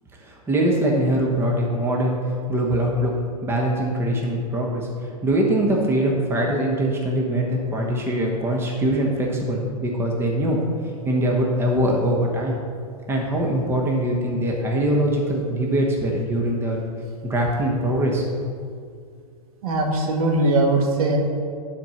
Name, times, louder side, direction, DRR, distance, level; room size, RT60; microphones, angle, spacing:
voice 1, 0.2-2.2 2.5-3.1 3.4-10.6 11.0-12.6 13.1-16.8 17.2-18.2, right 1 dB, 10° right, -1 dB, 1.0 m, -22 dB
voice 2, 19.6-21.2, right 2 dB, 65° right, 1 dB, 1.7 m, -20 dB
10.5 x 4.5 x 5.6 m, 2.2 s
hypercardioid pair, 135°, 20 cm